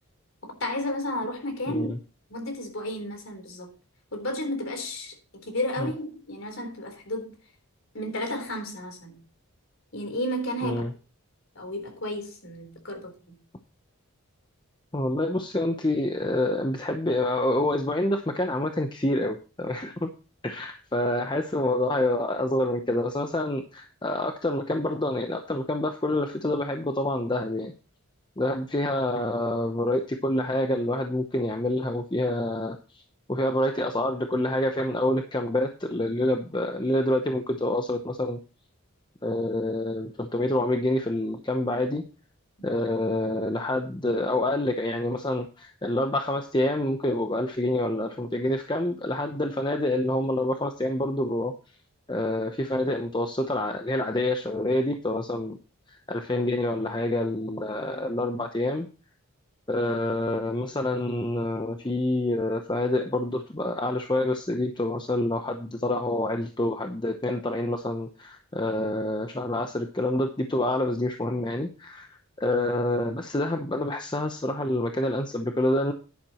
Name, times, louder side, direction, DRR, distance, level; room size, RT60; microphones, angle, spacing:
voice 1, 0.4-1.9 2.3-3.7 4.1-5.1 5.4-7.3 7.9-9.2 9.9-10.8 11.6-13.4, left 1 dB, 60° left, 3.8 m, -32 dB
voice 2, 10.6-10.9 14.9-20.1 20.4-27.7 28.4-33.0 33.3-38.4 39.2-42.0 42.6-51.5 52.1-55.6 55.9-58.9 59.7-75.9, left 1 dB, 20° left, 0.7 m, -27 dB
11.0 x 10.5 x 3.0 m
head